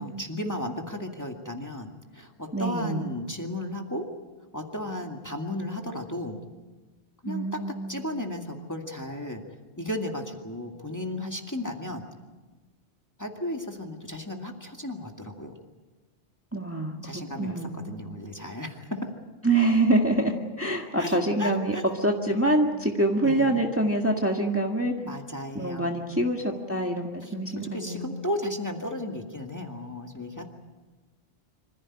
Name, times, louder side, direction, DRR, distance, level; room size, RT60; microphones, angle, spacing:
voice 1, 0.0-4.1 4.5-6.4 7.2-9.4 9.8-12.1 13.2-15.5 17.0-19.1 21.0-21.9 23.2-23.6 25.0-26.3 27.2-27.4 27.7-30.4, left 1 dB, 15° left, 2 dB, 2.1 m, -34 dB
voice 2, 2.5-3.0 7.2-8.0 16.5-17.9 19.4-24.9 25.5-28.1, right 1 dB, 10° right, 2 dB, 1.8 m, -25 dB
26.0 x 15.5 x 9.9 m, 1.2 s
omnidirectional pair, 1.1 m